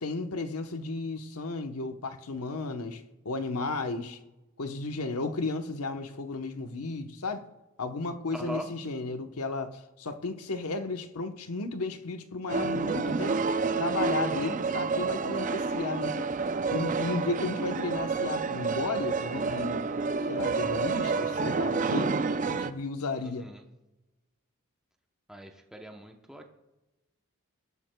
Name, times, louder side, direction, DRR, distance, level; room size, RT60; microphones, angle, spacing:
voice 1, 0.0-4.2 4.6-7.5 7.8-13.5 13.8-16.3 16.7-19.8 20.3-22.1 22.5-23.5, left 3 dB, 85° left, 1.0 m, -34 dB
voice 2, 8.3-8.7 23.2-23.6 25.3-26.5, equal, 5° right, 0.7 m, -41 dB
sound 1, 12.5-22.7, right 4 dB, 35° right, 0.4 m, -29 dB
21.5 x 12.0 x 2.2 m
head